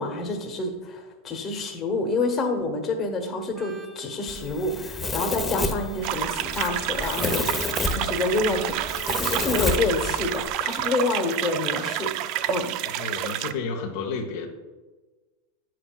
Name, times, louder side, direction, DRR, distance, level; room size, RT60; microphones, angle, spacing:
voice 1, 0.0-12.1 12.5-12.7, left 3 dB, 35° left, 3 dB, 1.2 m, -28 dB
Organ, 3.5-11.0, right 9 dB, 25° right, 1.3 m, -49 dB
Domestic sounds home sounds, 4.3-10.5, left 2 dB, 15° left, 0.8 m, -30 dB
sound 1, 6.0-13.5, right 12 dB, 55° right, 0.4 m, -29 dB
voice 2, 12.9-14.5, left 4 dB, 70° left, 1 dB, 1.0 m, -31 dB
9.5 x 7.6 x 2.4 m, 1.3 s
hypercardioid pair, 100°, 0 cm